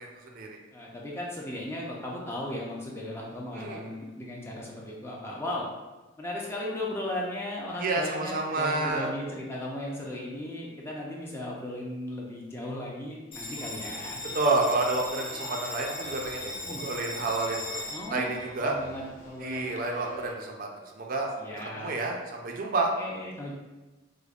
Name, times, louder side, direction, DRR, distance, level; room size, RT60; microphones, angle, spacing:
voice 1, 0.0-0.6 3.5-3.9 7.8-9.1 14.3-17.8 18.1-18.8 19.4-21.3 21.6-22.9, right 3 dB, 45° right, 1 dB, 0.4 m, -29 dB
voice 2, 0.7-5.7 6.2-14.2 16.6-16.9 17.9-18.3 18.6-19.6 21.4-21.9 23.0-23.5, left 1 dB, 15° left, -3 dB, 0.4 m, -36 dB
Bell, 13.3-20.3, left 2 dB, 30° left, 1.2 m, -39 dB
4.9 x 2.1 x 2.4 m, 1.1 s
head